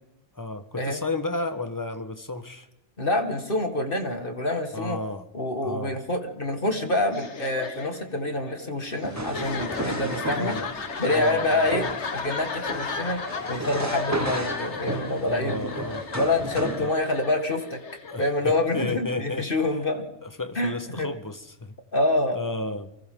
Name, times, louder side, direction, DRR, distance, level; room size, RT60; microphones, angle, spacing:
voice 1, 0.3-2.7 4.7-5.3 5.6-6.0 10.4-10.7 11.1-11.7 15.2-16.1 16.8-16.9 18.0-19.8 20.2-21.7 22.3-22.9, left 2 dB, 15° left, 9 dB, 1.3 m, -32 dB
voice 2, 3.0-5.0 5.3-10.6 11.0-11.9 12.1-13.2 13.5-15.7 16.2-17.8 18.2-20.0 20.6-21.1 21.9-22.4, left 1 dB, 40° left, 5 dB, 2.1 m, -26 dB
sound 1, 7.1-18.8, left 4 dB, 60° left, 1.7 m, -35 dB
sound 2, 9.0-16.9, right 1 dB, 15° right, 1.2 m, -34 dB
29.5 x 24.0 x 3.9 m, 0.93 s
omnidirectional pair, 1.4 m